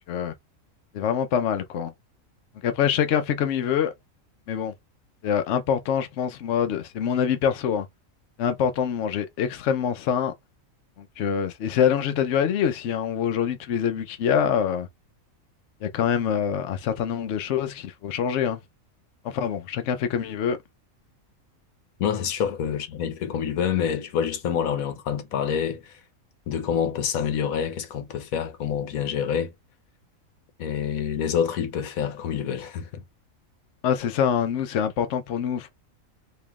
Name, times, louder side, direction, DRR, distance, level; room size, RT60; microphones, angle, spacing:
voice 1, 0.9-1.9 2.6-3.9 4.5-4.7 5.2-7.9 8.4-10.3 11.0-14.9 15.8-18.6 19.2-20.6 33.8-35.7, left 8 dB, 65° left, 0.9 m, -25 dB
voice 2, 22.0-26.0 26.5-29.5 30.6-33.0, left 8 dB, 85° left, 1.2 m, -27 dB
3.0 x 3.0 x 3.5 m
omnidirectional pair, 1.4 m